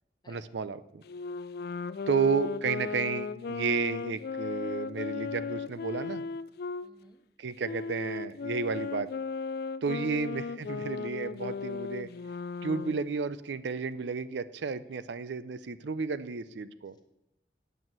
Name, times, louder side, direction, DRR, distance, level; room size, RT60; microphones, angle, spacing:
voice 1, 0.3-1.0 2.1-6.2 7.4-9.1 9.8-12.1 12.6-17.0, right 5 dB, 75° right, 15 dB, 0.5 m, -32 dB
Wind instrument woodwind instrument, 1.0-6.9 7.6-13.0, left 4 dB, 60° left, 0.4 m, -36 dB
voice 2, 6.8-7.2 9.8-10.1, left 2 dB, 25° left, 4 dB, 1.3 m, -56 dB
9.0 x 6.1 x 7.8 m, 0.89 s
head